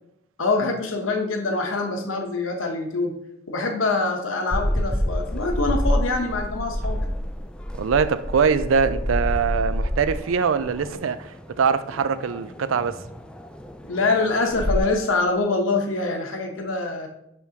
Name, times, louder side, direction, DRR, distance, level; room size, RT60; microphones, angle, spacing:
voice 1, 0.4-3.1 3.5-7.0 13.8-17.1, left 3 dB, 85° left, 0.9 m, -24 dB
sound 1, 4.5-14.8, equal, 5° left, 0.3 m, -28 dB
voice 2, 7.8-13.0, right 6 dB, 85° right, 0.4 m, -23 dB
10.5 x 3.5 x 2.8 m
head